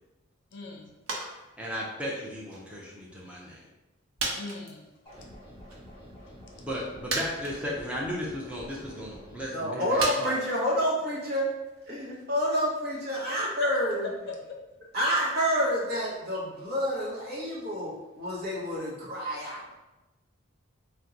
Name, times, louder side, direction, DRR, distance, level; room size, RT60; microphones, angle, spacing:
voice 1, 0.5-1.3 4.3-4.9 13.6-13.7 14.3-14.6, left 3 dB, 60° left, 2 dB, 0.5 m, -40 dB
sound 1, 1.1-1.4 1.7-2.9 3.4-3.5 4.2-5.3 5.7-5.8 6.7-6.8 7.1-7.9 8.4-9.0 10.0-14.1 14.4-14.5, right 3 dB, 85° right, 0.7 m, -37 dB
voice 2, 1.6-3.6 6.6-10.4, equal, 5° right, -4 dB, 0.5 m, -35 dB
sound 2, 5.1-9.4, equal, 20° left, 1.4 m, -48 dB
voice 3, 9.5-11.5 11.9-14.1 14.9-19.6, equal, 50° right, -4 dB, 0.9 m, -28 dB
2.9 x 2.2 x 3.7 m, 1.0 s
head